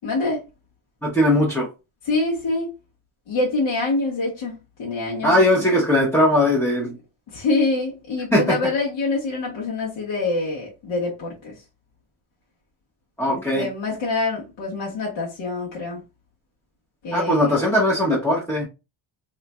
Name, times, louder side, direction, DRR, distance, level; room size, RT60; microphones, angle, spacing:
voice 1, 0.0-0.4 2.0-2.7 3.3-5.7 7.3-11.5 13.5-16.0 17.0-17.5, left 3 dB, 70° left, 1.3 m, -25 dB
voice 2, 1.0-1.7 5.2-7.0 8.3-8.6 13.2-13.7 17.1-18.7, left 1 dB, 5° left, 0.7 m, -19 dB
4.0 x 2.9 x 2.2 m
cardioid pair, 175°, 47 cm